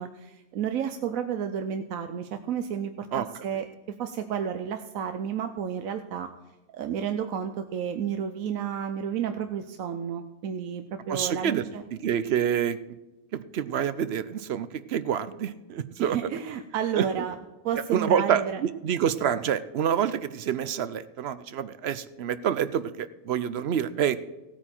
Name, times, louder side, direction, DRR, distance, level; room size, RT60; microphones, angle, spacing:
voice 1, 0.0-6.3 6.7-11.8 16.0-17.4 17.6-18.6, right 8 dB, 75° right, 7 dB, 1.1 m, -31 dB
voice 2, 11.1-11.6 11.9-12.8 13.3-16.2 16.9-17.0 17.9-24.2, right 8 dB, 60° right, 14 dB, 0.7 m, -27 dB
16.0 x 8.8 x 4.4 m, 1.1 s
omnidirectional pair, 1.4 m